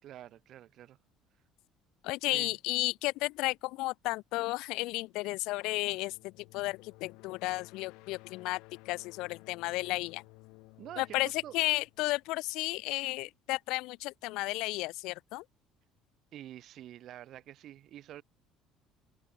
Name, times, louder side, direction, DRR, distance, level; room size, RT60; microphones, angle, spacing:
voice 1, 0.0-1.0 2.3-2.5 10.8-11.6 16.3-18.2, right 12 dB, 40° right, 2.6 m, -47 dB
voice 2, 2.0-10.2 11.0-15.4, left 21 dB, 70° left, 0.9 m, -33 dB
sound 1, 6.1-12.8, left 26 dB, 90° left, 5.1 m, -56 dB
cardioid pair, 180°, 0 cm